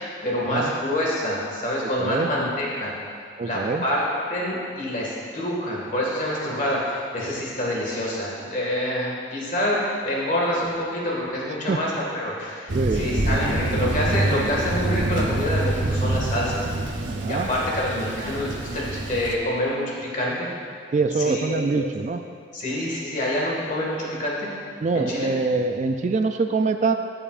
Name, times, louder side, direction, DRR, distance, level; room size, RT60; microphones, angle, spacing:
voice 1, 0.0-2.9 3.4-16.7 17.3-20.5 21.1-21.9 22.5-24.5 24.9-25.3, left 1 dB, 45° left, -4 dB, 1.9 m, -27 dB
voice 2, 2.0-2.3 3.4-3.8 11.7-11.8 12.7-13.1 17.1-17.5 20.9-22.2 24.8-26.9, right 4 dB, 40° right, 7 dB, 0.3 m, -24 dB
Thunder, 12.7-19.4, right 2 dB, 90° right, 0.8 m, -26 dB
14.0 x 6.9 x 2.5 m, 2.3 s
head